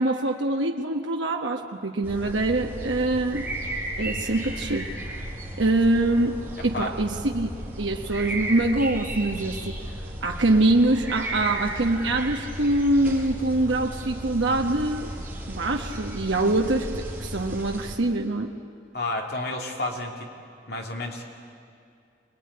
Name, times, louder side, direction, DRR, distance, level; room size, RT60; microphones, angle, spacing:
voice 1, 0.0-3.5 4.0-4.9 5.6-7.5 7.8-9.8 10.2-15.1 15.5-18.5, right 2 dB, 85° right, 2 dB, 1.3 m, -24 dB
sound 1, 2.0-18.0, right 1 dB, 10° right, 5.0 m, -35 dB
voice 2, 6.6-6.9 18.9-20.3 20.7-21.2, left 2 dB, 60° left, 1 dB, 3.0 m, -31 dB
25.5 x 20.5 x 9.7 m, 2.4 s
head